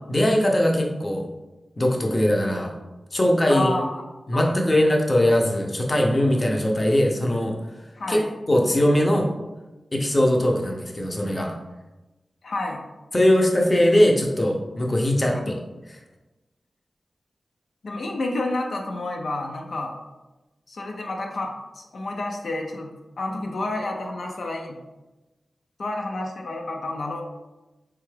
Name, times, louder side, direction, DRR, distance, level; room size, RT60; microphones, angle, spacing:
voice 1, 0.1-1.3 1.8-2.7 3.1-3.8 4.3-7.5 8.1-8.2 8.5-9.3 9.9-11.5 13.1-15.6, left 1 dB, 30° left, 0 dB, 0.6 m, -20 dB
voice 2, 3.5-4.0 4.3-4.8 7.9-8.3 12.4-12.8 17.8-20.0 20.7-22.9 23.2-24.8 25.8-27.2, left 2 dB, 75° left, 1 dB, 0.4 m, -30 dB
3.7 x 2.3 x 3.2 m, 1.1 s
wide cardioid pair, 70°, 0 cm